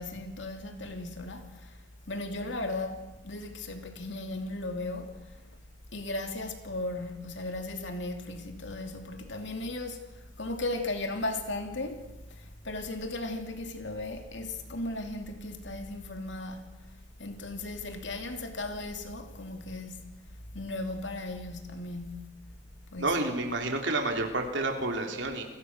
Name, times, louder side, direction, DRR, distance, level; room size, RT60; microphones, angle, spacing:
voice 1, 0.0-1.8 2.1-5.6 5.9-16.6 17.2-20.0 20.5-22.3 22.9-23.2, left 2 dB, 65° left, 2.7 m, -36 dB
voice 2, 23.0-25.4, right 2 dB, 65° right, 3.8 m, -29 dB
29.5 x 20.0 x 6.4 m
head